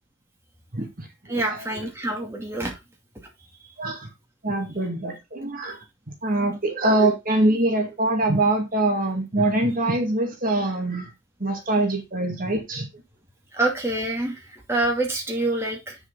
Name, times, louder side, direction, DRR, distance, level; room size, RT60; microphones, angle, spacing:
voice 1, 0.7-1.4 3.8-4.1 4.4-5.8 6.2-11.1 11.4-12.9, right 2 dB, 45° right, 2.2 m, -23 dB
voice 2, 1.3-2.8 13.5-16.0, right 2 dB, 15° right, 2.4 m, -26 dB
8.0 x 7.1 x 4.0 m
head